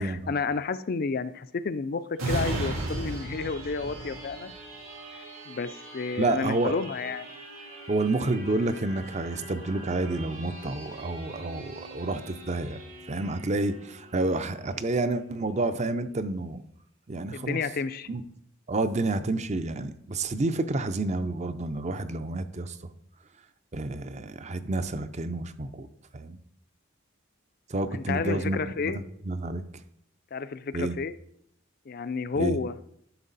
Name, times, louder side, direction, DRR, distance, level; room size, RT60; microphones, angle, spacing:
voice 1, 0.0-4.5 5.5-7.3 17.3-18.1 27.9-29.0 30.3-31.1 31.9-32.7, left 4 dB, 45° left, 13 dB, 0.4 m, -31 dB
sound 1, 2.2-15.5 15.9-16.1, right 2 dB, 80° right, 3.2 m, -39 dB
voice 2, 6.2-6.8 7.9-12.8 13.1-16.6 17.1-17.6 18.1-18.2 18.7-22.8 23.7-25.9 26.1-26.4 27.7-28.6 28.8-29.6 30.7-30.9 32.4-32.6, right 2 dB, 35° right, 11 dB, 0.6 m, -29 dB
11.0 x 6.6 x 4.0 m, 0.71 s
head